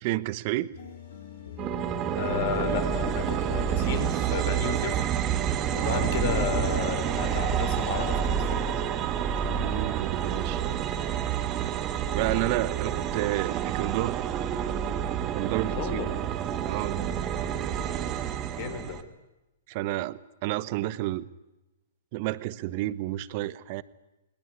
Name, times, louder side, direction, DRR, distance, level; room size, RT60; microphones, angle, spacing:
voice 1, 0.0-0.7 5.7-6.1 9.5-10.6 12.1-14.2 15.3-16.1 16.6-17.1 19.7-21.3 22.1-23.8, right 17 dB, 45° right, 17 dB, 1.0 m, -30 dB
sound 1, 0.7-9.9, left 8 dB, 80° left, 7.2 m, -45 dB
sound 2, 1.6-19.0, right 9 dB, 30° right, 1.7 m, -29 dB
voice 2, 2.1-5.0 5.7-8.6 15.7-16.2 18.6-19.0, left 6 dB, 55° left, 8 dB, 4.2 m, -32 dB
20.5 x 19.5 x 9.6 m, 0.98 s
hypercardioid pair, 120°, 0 cm